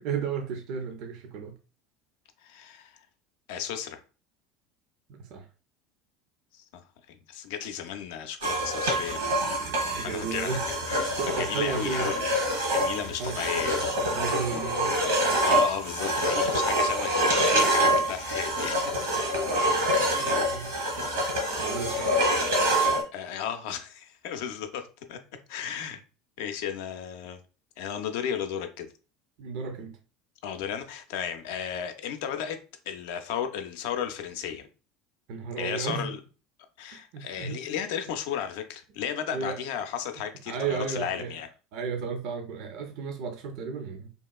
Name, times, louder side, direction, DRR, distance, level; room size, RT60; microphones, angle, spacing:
voice 1, 0.0-1.6 5.2-5.5 9.5-10.7 11.2-12.1 13.2-14.9 20.2-20.8 21.6-22.2 29.4-30.0 35.3-36.1 37.1-37.6 39.3-39.6 40.5-41.4 41.7-44.1, right 6 dB, 60° right, 0.4 m, -34 dB
voice 2, 2.4-3.0 3.5-4.0 6.5-9.5 10.0-10.6 10.9-12.3 12.7-13.8 14.2-14.3 14.9-15.1 15.4-18.9 19.5-19.8 21.9-22.3 23.1-25.2 25.5-26.0 26.4-27.4 27.8-28.9 30.4-32.6 32.9-34.7 35.6-36.2 36.8-41.5, left 8 dB, 65° left, 0.3 m, -34 dB
sound 1, 8.4-23.0, right 1 dB, 80° right, 0.8 m, -26 dB
2.9 x 2.3 x 2.2 m
hypercardioid pair, 70°, 0 cm